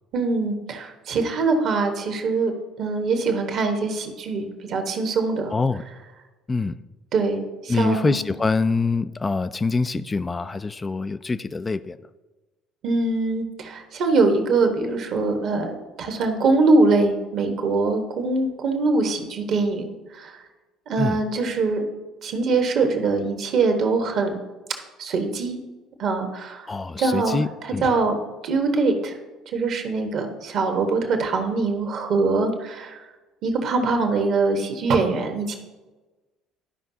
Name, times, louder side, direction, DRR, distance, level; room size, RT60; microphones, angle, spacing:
voice 1, 0.1-5.5 7.1-8.2 12.8-20.3 20.9-21.8 22.2-24.4 25.0-25.6 26.0-26.6 27.0-28.1 28.4-29.1 29.5-33.0 33.4-35.6, right 3 dB, 55° right, 5 dB, 1.3 m, -23 dB
voice 2, 5.5-5.8 6.5-6.7 7.7-12.0 21.0-21.2 26.7-27.8, left 3 dB, 25° left, 12 dB, 0.3 m, -25 dB
12.5 x 5.3 x 2.8 m, 1.2 s
figure-of-eight pair, 55°, 0 cm